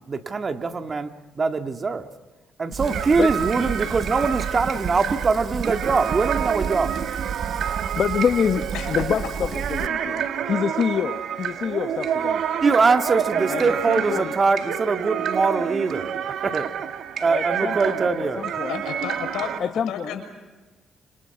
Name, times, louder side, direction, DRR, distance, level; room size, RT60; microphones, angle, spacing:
voice 1, 0.1-1.1 1.4-2.1 2.6-6.9 12.6-16.1 16.4-16.7 17.2-18.4, right 4 dB, 35° right, 7 dB, 1.9 m, -22 dB
Fire, 2.7-9.9, right 7 dB, 55° right, 1.1 m, -32 dB
sound 1, 2.8-19.6, right 8 dB, 70° right, 1.9 m, -29 dB
voice 2, 7.6-12.4 13.5-14.3 17.3-18.0 18.4-18.8 19.6-20.2, left 7 dB, 55° left, 8 dB, 1.1 m, -26 dB
voice 3, 8.7-9.6 18.7-19.5 19.9-20.2, left 7 dB, 90° left, 5 dB, 6.5 m, -32 dB
30.0 x 27.5 x 6.0 m, 1.2 s
cardioid pair, 90°, 0 cm